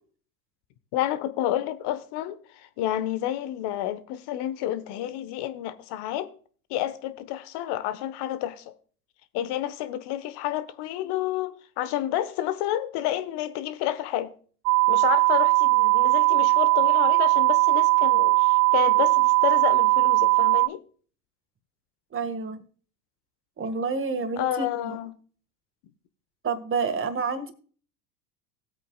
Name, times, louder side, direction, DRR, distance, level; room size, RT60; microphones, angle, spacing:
voice 1, 0.9-6.3 6.7-8.7 9.3-14.3 14.9-20.8 24.4-25.1, left 12 dB, 55° left, 1.4 m, -30 dB
sound 1, 14.7-20.7, right 24 dB, 65° right, 0.6 m, -20 dB
voice 2, 22.1-22.6 23.6-25.0 26.4-27.5, right 4 dB, 25° right, 1.9 m, -29 dB
18.5 x 8.3 x 2.4 m
hypercardioid pair, 85°, 48 cm